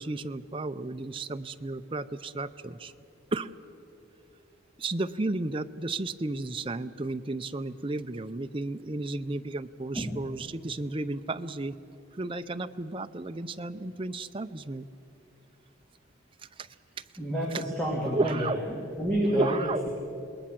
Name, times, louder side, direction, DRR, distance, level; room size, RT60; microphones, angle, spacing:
voice 1, 0.0-2.9 3.3-3.5 4.8-11.8 12.1-14.9 16.6-16.7 17.5-17.6 18.0-18.6 19.2-19.8, right 2 dB, 25° right, 8 dB, 0.5 m, -33 dB
voice 2, 17.2-18.5 19.0-19.9, equal, 5° left, -3 dB, 2.7 m, -29 dB
27.0 x 20.0 x 7.6 m, 2.8 s
head